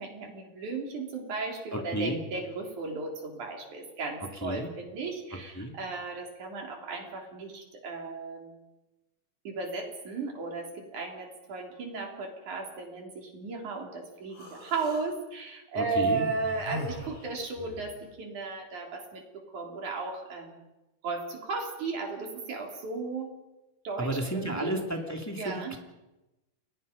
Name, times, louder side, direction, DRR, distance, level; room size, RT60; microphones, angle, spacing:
voice 1, 0.0-8.7 9.4-20.6 21.0-23.3 23.8-24.7 25.4-25.8, right 4 dB, 65° right, 1 dB, 5.1 m, -35 dB
voice 2, 1.7-2.2 4.4-4.7 5.5-5.7 15.7-16.3 24.0-25.8, right 1 dB, 5° left, 2 dB, 2.2 m, -32 dB
Human voice, 14.3-15.0 16.0-17.9, left 1 dB, 75° left, 8.2 m, -41 dB
29.5 x 22.0 x 5.4 m, 0.99 s
omnidirectional pair, 3.8 m